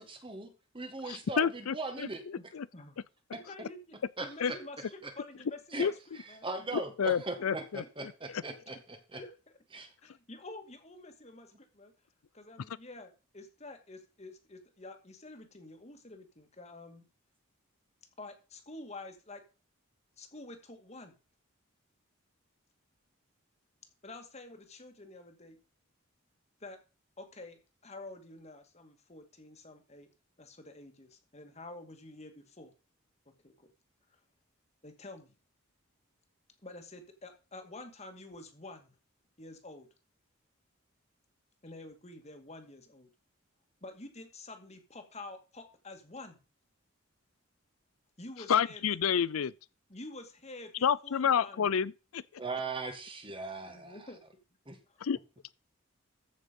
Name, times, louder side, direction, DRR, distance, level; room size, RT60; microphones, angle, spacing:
voice 1, 0.0-2.2 4.2-4.6 5.0-5.1 5.7-5.9 6.4-9.2 9.7-9.9 52.4-54.1 54.7-54.8, right 3 dB, 25° right, 1.9 m, -39 dB
voice 2, 1.1-2.7 4.4-4.5 5.8-5.9 7.0-8.4 12.7-12.8 48.5-49.5 50.8-52.2 55.0-55.2, left 7 dB, 90° left, 0.5 m, -30 dB
voice 3, 3.5-6.0 6.3-6.8 7.5-7.6 9.1-9.3 10.0-11.9 12.3-17.0 18.2-19.4 20.2-21.2 24.0-25.6 26.6-26.8 27.2-30.1 30.4-32.7 33.3-33.7 34.1-34.2 34.8-35.3 36.6-39.0 39.4-39.9 41.6-43.1 43.8-46.4 48.2-49.0 49.9-51.7 53.6-54.2 54.9-55.0, left 2 dB, 30° left, 2.1 m, -48 dB
14.5 x 6.5 x 5.3 m
head